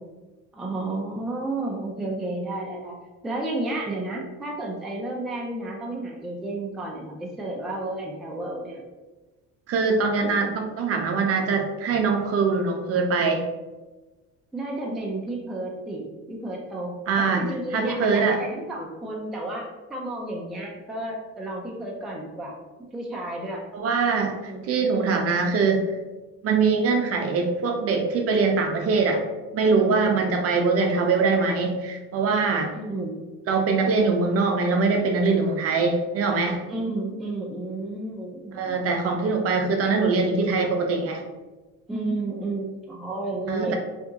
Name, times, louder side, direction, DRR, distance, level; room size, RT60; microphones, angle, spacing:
voice 1, 0.5-3.0 3.2-8.8 14.5-22.6 22.9-23.6 24.5-24.7 30.0-30.2 32.7-33.2 36.7-38.9 41.9-43.8, right 2 dB, ahead, -2 dB, 0.3 m, -32 dB
voice 2, 9.7-13.4 17.1-18.4 23.7-25.8 26.4-29.2 29.5-32.7 33.5-36.7 38.5-41.2 43.5-43.8, right 4 dB, 50° right, 3 dB, 0.5 m, -23 dB
2.8 x 2.6 x 3.5 m, 1.2 s
cardioid pair, 150°, 31 cm